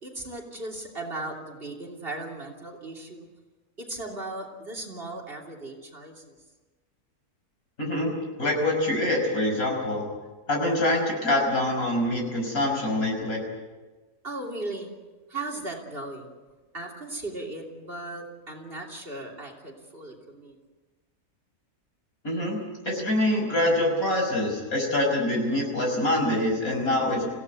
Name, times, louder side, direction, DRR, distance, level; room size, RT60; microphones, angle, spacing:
voice 1, 0.0-3.3 3.8-6.4 14.2-14.9 15.3-16.3 16.7-20.6, right 2 dB, 40° right, 3 dB, 3.3 m, -37 dB
voice 2, 7.8-8.1 8.4-10.1 10.5-13.4 22.2-22.6 22.8-27.3, left 1 dB, 65° left, 1 dB, 6.2 m, -25 dB
26.5 x 16.5 x 8.3 m, 1.3 s
omnidirectional pair, 1.6 m